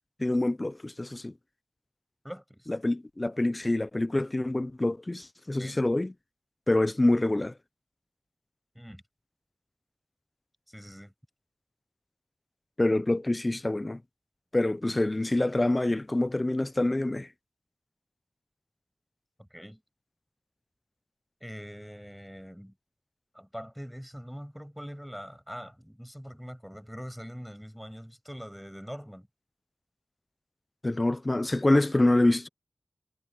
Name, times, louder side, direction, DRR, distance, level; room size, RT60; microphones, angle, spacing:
voice 1, 0.2-1.3 2.7-6.1 6.7-7.5 12.8-14.0 14.5-17.3 30.8-32.5, left 2 dB, 30° left, 0.7 m, -26 dB
voice 2, 2.2-2.7 5.6-5.8 8.7-9.0 10.7-11.1 19.4-19.8 21.4-22.7 23.3-29.3, equal, ahead, 7.1 m, -43 dB
wide cardioid pair, 60°, 0 cm